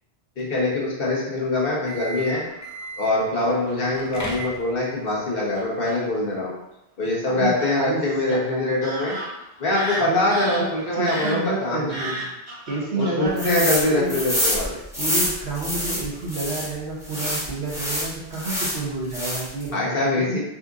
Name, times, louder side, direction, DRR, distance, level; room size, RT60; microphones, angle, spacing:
voice 1, 0.4-2.4 3.0-6.5 7.0-9.1 9.6-12.0 12.9-14.8 19.7-20.4, left 2 dB, 60° left, -5 dB, 1.3 m, -23 dB
sound 1, 1.7-3.2 3.9-5.0, right 1 dB, 25° left, 0.4 m, -34 dB
Fowl / Bird vocalization bird call bird song, 2.2-2.9 3.7-4.3 5.1-5.2 5.6-6.0 7.6-7.7 8.3-8.4 8.8-14.7 15.0-15.2 15.6-15.8 16.1-16.4, right 1 dB, 45° right, 1.2 m, -35 dB
voice 2, 7.2-8.7 10.0-12.3 12.7-14.2 15.0-20.4, right 2 dB, 80° right, -2 dB, 1.2 m, -30 dB
sound 2, 13.4-13.8 14.1-16.7 17.1-18.8 19.1-19.6, equal, 5° right, 1.0 m, -26 dB
4.2 x 2.6 x 3.6 m, 0.87 s
omnidirectional pair, 1.1 m